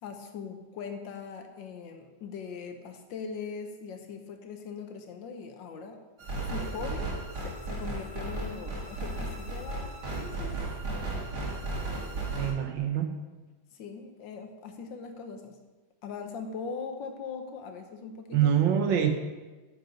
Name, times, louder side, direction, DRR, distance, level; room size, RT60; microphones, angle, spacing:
voice 1, 0.0-6.0 6.4-11.0 13.7-15.6 16.0-18.5 19.0-19.1, left 5 dB, 75° left, 5 dB, 1.7 m, -41 dB
sound 1, 6.2-12.5, right 2 dB, 55° right, 2.4 m, -35 dB
voice 2, 12.4-13.2 18.3-19.1, right 9 dB, 75° right, 6 dB, 1.6 m, -25 dB
10.0 x 5.3 x 5.1 m, 1.2 s
omnidirectional pair, 2.1 m